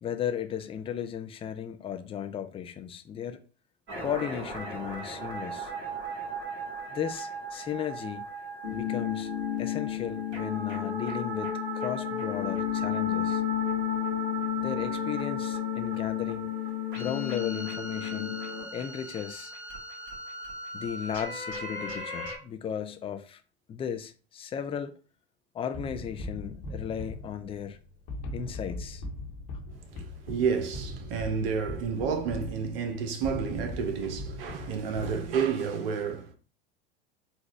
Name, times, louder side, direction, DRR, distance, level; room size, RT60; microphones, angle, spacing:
voice 1, 0.0-3.4 4.0-5.7 6.9-8.3 8.7-9.3 9.6-13.4 14.6-16.5 17.0-18.5 18.7-19.5 20.7-23.4 23.7-24.9 25.5-27.8 28.3-29.0, left 8 dB, 20° left, 0.4 m, -35 dB
sound 1, 3.9-22.4, right 2 dB, 40° right, 1.9 m, -38 dB
sound 2, 8.6-18.6, left 16 dB, 85° left, 1.0 m, -32 dB
sound 3, 25.7-35.7, left 1 dB, 55° left, 1.1 m, -40 dB
voice 2, 29.9-36.4, right 6 dB, 65° right, 0.8 m, -30 dB
4.1 x 2.3 x 3.1 m
figure-of-eight pair, 80°, 31 cm